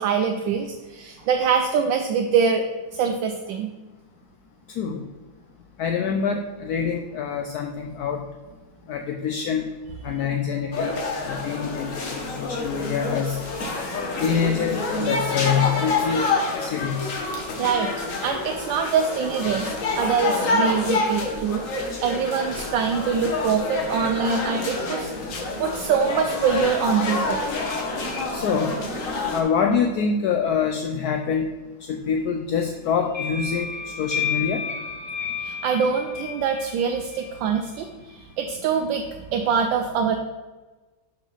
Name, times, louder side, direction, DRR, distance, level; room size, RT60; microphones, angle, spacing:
voice 1, 0.0-2.6 2.9-3.7 17.6-21.7 22.0-27.4 35.4-39.0 39.3-40.2, right 6 dB, 75° right, 5 dB, 1.3 m, -24 dB
voice 2, 4.7-5.1 5.8-8.2 8.9-9.7 10.0-11.0 11.3-13.4 14.2-16.2 16.6-17.2 28.3-28.7 29.3-31.5 31.9-34.7, left 6 dB, 70° left, 4 dB, 0.9 m, -25 dB
sound 1, 10.7-29.4, left 3 dB, 50° left, 1.3 m, -27 dB
sound 2, 33.1-37.6, left 7 dB, 25° left, 1.3 m, -31 dB
5.9 x 5.5 x 5.6 m, 1.2 s
omnidirectional pair, 2.1 m